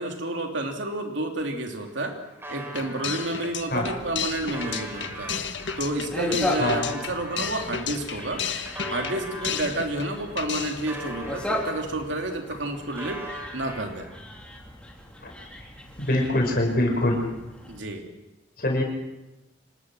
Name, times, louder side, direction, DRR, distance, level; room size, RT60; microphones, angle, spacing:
voice 1, 0.0-2.2 2.5-5.3 5.8-8.4 8.9-13.2 13.5-14.0 17.7-18.0, right 1 dB, 75° right, 3 dB, 3.0 m, -30 dB
sound 1, 1.4-1.5 1.7-3.3 3.9-9.7 10.2-12.1 12.4-14.2, equal, 10° right, 3.3 m, -41 dB
sound 2, 2.7-10.1 10.4-10.9, left 7 dB, 70° left, 1.5 m, -33 dB
sound 3, 3.7-17.8, left 1 dB, 5° left, 3.3 m, -37 dB
voice 2, 16.0-17.2 18.6-18.8, left 1 dB, 50° left, 2 dB, 5.5 m, -23 dB
26.0 x 20.0 x 6.4 m, 0.95 s
head